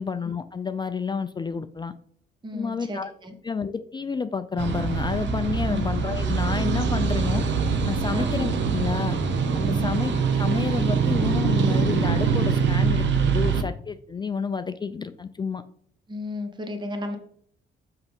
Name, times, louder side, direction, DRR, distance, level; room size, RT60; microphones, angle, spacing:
voice 1, 0.0-1.9 2.5-3.1 3.4-7.4 7.8-9.2 9.5-15.6, left 5 dB, 20° left, 10 dB, 0.4 m, -30 dB
voice 2, 2.4-3.3 5.6-5.8 8.1-8.3 9.7-10.0 16.1-17.2, left 2 dB, 20° right, 5 dB, 1.0 m, -33 dB
sound 1, 4.6-13.6, right 5 dB, 70° right, 0.9 m, -24 dB
5.8 x 5.5 x 3.5 m, 0.62 s
cardioid pair, 90°, 20 cm